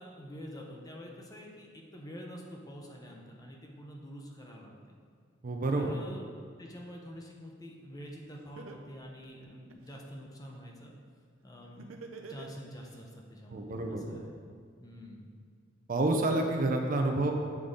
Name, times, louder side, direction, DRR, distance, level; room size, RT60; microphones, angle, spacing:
voice 1, 0.0-5.0 5.8-11.0 11.4-14.5 14.8-15.3, equal, 20° left, -1 dB, 0.7 m, -47 dB
voice 2, 5.4-5.9 13.5-14.2 15.9-17.3, right 2 dB, 40° right, 3 dB, 0.5 m, -29 dB
Laughter, 8.0-8.1 8.6-10.0 11.8-13.0, right 4 dB, 90° right, 0.5 m, -46 dB
8.0 x 3.7 x 3.7 m, 2.2 s
head